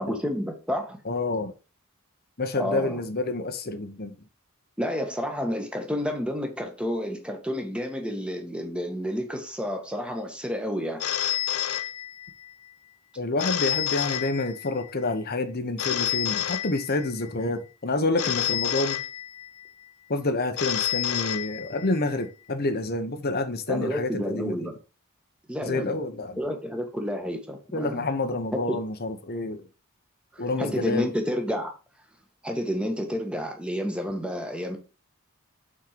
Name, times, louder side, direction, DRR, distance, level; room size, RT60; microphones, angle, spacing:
voice 1, 0.0-1.0 2.5-3.0 4.8-11.0 23.7-24.7 25.5-25.9 26.4-28.1 28.7-28.8 30.3-31.7 32.4-34.8, equal, 5° right, 1.5 m, -30 dB
voice 2, 1.0-1.5 2.4-4.2 13.2-19.0 20.1-24.7 25.6-26.4 27.7-29.7 30.4-31.1, left 2 dB, 45° left, 1.0 m, -28 dB
Telephone, 11.0-12.5 13.4-14.9 15.8-17.3 18.2-19.7 20.6-22.1, left 11 dB, 70° left, 0.7 m, -29 dB
6.0 x 4.5 x 5.1 m
head